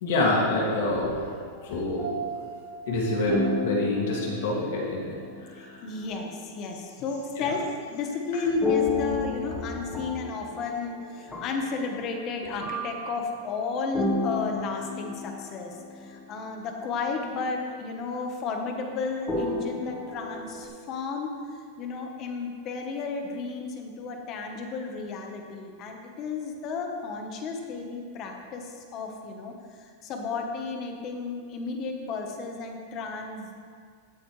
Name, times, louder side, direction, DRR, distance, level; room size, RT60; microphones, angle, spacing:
voice 1, 0.0-1.3 1.6-2.3 2.9-5.1 5.5-5.9 7.4-7.5, left 2 dB, 60° left, -4 dB, 2.2 m, -27 dB
sound 1, 1.6-5.7 8.6-12.2 12.6-16.2 16.7-16.9 19.3-20.7, left 2 dB, 10° left, 1.2 m, -32 dB
voice 2, 5.6-21.3 21.8-33.5, left 4 dB, 30° left, 3 dB, 1.1 m, -33 dB
15.5 x 8.4 x 3.2 m, 2.1 s
supercardioid pair, 170°, 0 cm